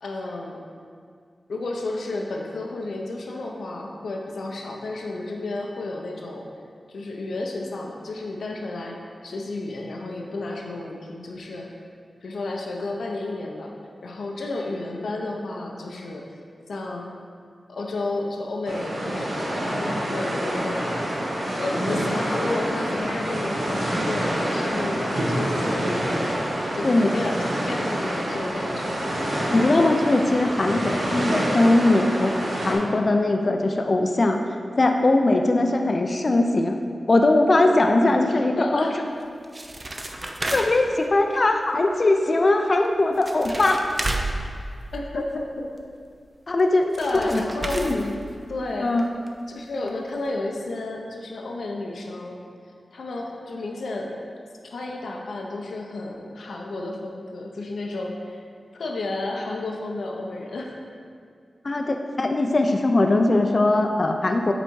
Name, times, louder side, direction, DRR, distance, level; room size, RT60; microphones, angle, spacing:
voice 1, 0.0-0.6 1.5-6.5 6.9-9.0 9.2-11.7 12.2-13.7 14.0-16.2 16.7-17.1 17.7-21.3 21.5-26.4 26.7-29.0 38.0-39.0 44.9-45.7 47.0-47.8 48.5-48.9 49.5-52.4 52.9-54.1 54.6-58.4 58.7-60.7, left 2 dB, 85° left, 0 dB, 0.7 m, -32 dB
sound 1, 18.6-32.7, right 1 dB, 85° right, 1.5 m, -27 dB
voice 2, 29.5-32.3 32.6-34.4 34.8-36.8 37.1-38.9 40.5-43.8 46.5-46.9 47.1-47.4 47.7-48.1 48.8-49.0 61.6-64.5, left 2 dB, 50° left, 4 dB, 0.5 m, -20 dB
sound 2, 39.2-41.0 42.8-42.9 43.1-45.4 46.6-46.7 46.9-48.6 49.0-49.1 49.3-49.4 49.9-50.0 50.2-50.3, right 1 dB, 35° right, 0.7 m, -31 dB
8.0 x 4.0 x 4.6 m, 2.2 s
cardioid pair, 55°, 0 cm